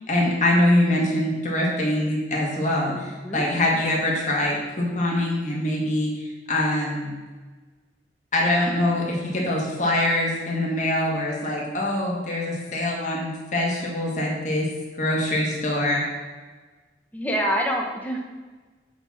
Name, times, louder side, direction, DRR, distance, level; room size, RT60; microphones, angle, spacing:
voice 1, 0.1-2.9 3.3-6.2 6.5-7.1 8.3-14.7 15.0-16.1, left 1 dB, 40° left, -3 dB, 2.1 m, -23 dB
voice 2, 2.8-3.4 17.1-18.2, equal, 10° left, 0 dB, 1.1 m, -27 dB
8.6 x 4.5 x 6.3 m, 1.3 s
head